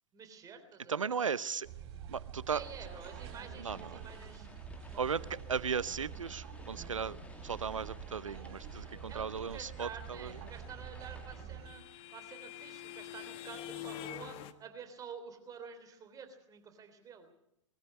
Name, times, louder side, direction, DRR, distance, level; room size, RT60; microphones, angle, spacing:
voice 1, 0.1-1.2 2.5-4.5 4.9-5.1 9.1-11.8 12.1-17.3, right 6 dB, 20° right, 7 dB, 3.3 m, -49 dB
voice 2, 0.9-1.7 2.1-2.6 3.6-4.0 5.0-5.2 5.5-10.4, right 6 dB, 85° right, 19 dB, 0.8 m, -36 dB
Ben Shewmaker - Noodle Soup Restaurant, 1.6-11.7, right 8 dB, 45° right, 5.7 m, -47 dB
sound 1, 2.5-11.4, left 2 dB, 10° left, 2.3 m, -54 dB
sound 2, 10.7-14.5, left 12 dB, 35° left, 1.3 m, -46 dB
21.0 x 14.0 x 9.5 m, 0.79 s
figure-of-eight pair, 110°, 16 cm